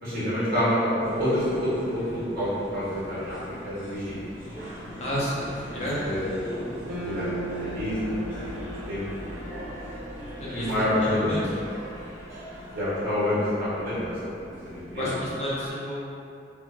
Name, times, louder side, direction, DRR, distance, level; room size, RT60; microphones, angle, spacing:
voice 1, 0.0-3.4 3.6-4.2 5.7-6.5 7.0-9.0 10.5-11.6 12.7-14.1 14.6-15.2, left 1 dB, 50° right, -12 dB, 1.1 m, -28 dB
sound 1, 1.0-15.7, equal, 15° right, 0.7 m, -40 dB
voice 2, 5.0-6.1 10.4-10.7 11.0-11.4 14.9-16.2, equal, 35° left, -8 dB, 0.5 m, -30 dB
sound 2, 6.9-11.2, right 2 dB, 70° right, 0.4 m, -39 dB
2.2 x 2.1 x 3.1 m, 2.5 s
head